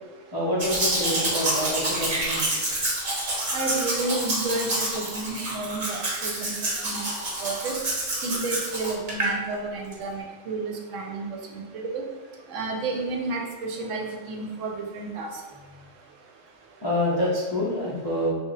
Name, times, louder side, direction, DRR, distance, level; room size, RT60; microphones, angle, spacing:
voice 1, 0.3-2.6 16.8-18.3, left 1 dB, 40° left, -7 dB, 0.3 m, -27 dB
Domestic sounds home sounds, 0.6-9.3 9.9-10.0, right 1 dB, 45° right, 0.8 m, -28 dB
voice 2, 3.5-6.5 6.8-7.0 7.4-7.8 8.2-12.0 12.5-15.3, right 3 dB, 75° right, 1 dB, 0.9 m, -31 dB
3.0 x 2.4 x 3.8 m, 1.3 s
omnidirectional pair, 1.3 m